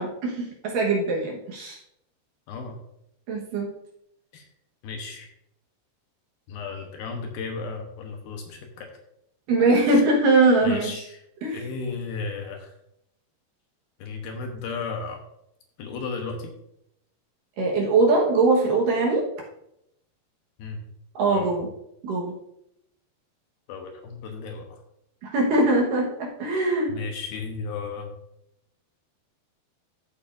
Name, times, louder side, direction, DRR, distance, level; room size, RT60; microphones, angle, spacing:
voice 1, 0.0-1.8 3.3-3.7 9.5-10.9 11.4-11.7 17.6-19.3 21.2-21.7 22.0-22.3 25.2-26.9, right 2 dB, 65° right, -2 dB, 2.6 m, -22 dB
voice 2, 2.5-2.8 4.3-4.5 4.8-5.3 6.5-8.9 9.8-10.0 10.6-11.2 11.5-12.7 14.0-15.2 15.8-16.5 20.6-20.8 21.3-21.6 23.7-24.8 26.9-28.1, left 4 dB, 75° left, 3 dB, 2.7 m, -34 dB
14.0 x 7.3 x 2.6 m, 0.79 s
omnidirectional pair, 4.8 m